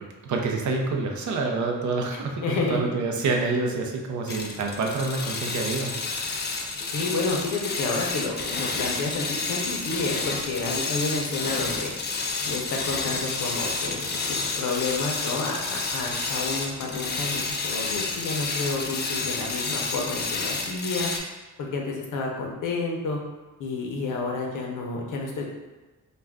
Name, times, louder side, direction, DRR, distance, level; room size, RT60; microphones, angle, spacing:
voice 1, 0.2-6.0, right 3 dB, 70° right, 1 dB, 0.5 m, -27 dB
voice 2, 2.4-2.8 6.9-11.9 12.4-21.1 21.6-23.2 23.6-25.4, left 3 dB, 80° left, 0 dB, 0.6 m, -30 dB
sound 1, 4.3-21.2, left 3 dB, 35° left, 0.4 m, -30 dB
2.3 x 2.2 x 3.4 m, 1.2 s
cardioid pair, 95°, 31 cm